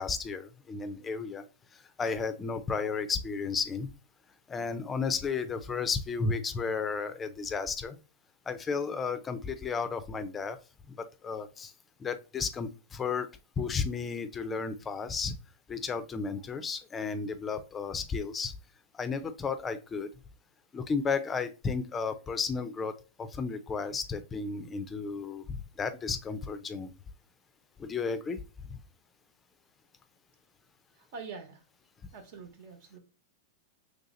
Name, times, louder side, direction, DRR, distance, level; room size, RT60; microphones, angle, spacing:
voice 1, 0.0-1.4 1.7-3.9 4.5-8.0 8.5-10.6 10.9-11.7 12.0-13.3 13.6-15.3 15.7-18.5 18.9-20.1 20.7-26.9 27.8-28.4 28.7-28.8, left 5 dB, 20° left, 10 dB, 0.4 m, -33 dB
voice 2, 30.9-31.6 32.1-33.0, right 5 dB, 60° right, 5 dB, 1.2 m, -45 dB
3.2 x 2.8 x 3.8 m, 0.30 s
hypercardioid pair, 125°, 0 cm